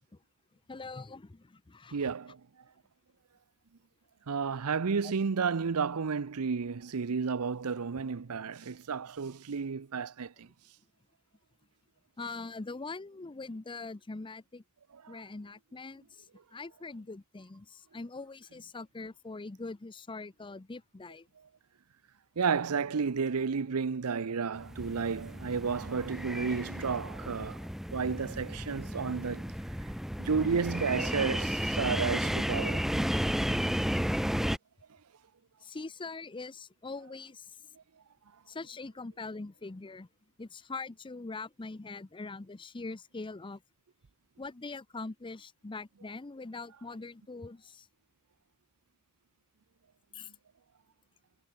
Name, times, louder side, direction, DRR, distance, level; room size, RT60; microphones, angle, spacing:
voice 1, 0.7-2.1 12.2-14.6 15.1-16.0 16.5-21.3 35.6-37.5 38.5-40.1 40.4-43.6 44.4-47.9 50.1-50.3, left 3 dB, 20° left, 0.6 m, -42 dB
voice 2, 1.9-2.4 4.3-10.5 15.0-15.2 22.4-27.6 27.9-29.4 30.2-32.8, right 5 dB, 75° right, 0.6 m, -32 dB
sound 1, 24.6-34.6, equal, ahead, 1.1 m, -33 dB
head